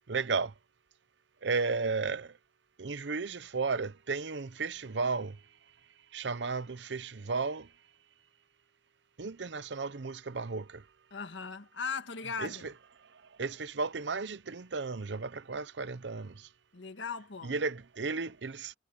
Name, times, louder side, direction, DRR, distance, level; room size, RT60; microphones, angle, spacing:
voice 1, 0.1-0.5 1.4-2.3 2.8-5.4 6.1-7.7 9.2-10.8 12.4-12.7 13.4-16.5 17.4-18.7, right 4 dB, 70° right, 0.8 m, -34 dB
voice 2, 11.1-12.7 16.7-17.6, left 5 dB, 85° left, 1.6 m, -38 dB
head